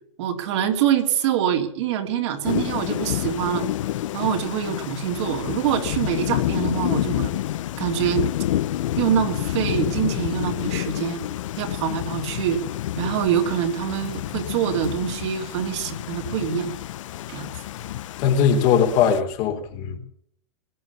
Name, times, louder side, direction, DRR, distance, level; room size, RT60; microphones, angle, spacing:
voice 1, 0.2-3.7 4.1-7.3 7.8-8.2 9.0-11.2 11.6-12.6 13.0-16.7 17.3-17.5, right 9 dB, 60° right, 3.1 m, -25 dB
Thunder / Rain, 2.4-19.2, left 13 dB, 75° left, 0.7 m, -28 dB
voice 2, 18.2-20.0, left 7 dB, 45° left, 3.2 m, -20 dB
21.0 x 9.1 x 7.1 m
hypercardioid pair, 135°, 16 cm